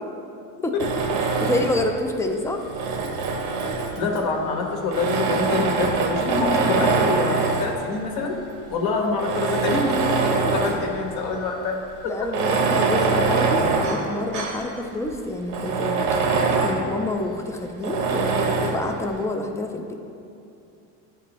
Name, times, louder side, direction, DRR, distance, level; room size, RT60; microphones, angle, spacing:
Tools, 0.8-1.9 2.6-4.2 4.9-7.8 8.5-8.6 9.1-10.9 11.3-11.4 12.2-14.7 15.1-15.2 15.5-16.9 17.8-18.8, right 4 dB, 75° right, 1.0 m, -23 dB
voice 1, 1.4-2.6 10.4-10.5 12.0-16.0 16.6-19.9, left 2 dB, 10° left, 4 dB, 0.3 m, -28 dB
voice 2, 4.0-8.4 8.7-12.3, left 3 dB, 65° left, 0 dB, 1.3 m, -26 dB
10.5 x 4.6 x 3.0 m, 2.6 s
cardioid pair, 125°, 37 cm